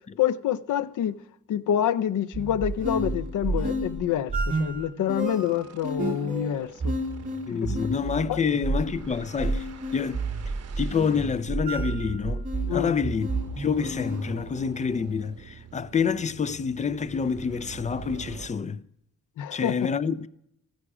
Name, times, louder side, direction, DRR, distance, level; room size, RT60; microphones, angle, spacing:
voice 1, 0.2-1.2 1.5-7.0 7.5-7.9 8.3-8.4 12.7-12.9 19.4-19.9, left 10 dB, 85° left, 0.5 m, -27 dB
sound 1, 1.8-1.9 2.3-2.4 2.7-2.8 3.1-3.3 4.6-18.5, right 6 dB, 55° right, 1.1 m, -46 dB
sound 2, 2.3-14.4, right 2 dB, 25° right, 2.1 m, -31 dB
voice 2, 7.5-9.7 9.9-10.2 10.8-13.3 13.6-18.8 19.5-20.3, left 6 dB, 25° left, 0.4 m, -27 dB
14.5 x 9.8 x 4.9 m
wide cardioid pair, 120°, 30 cm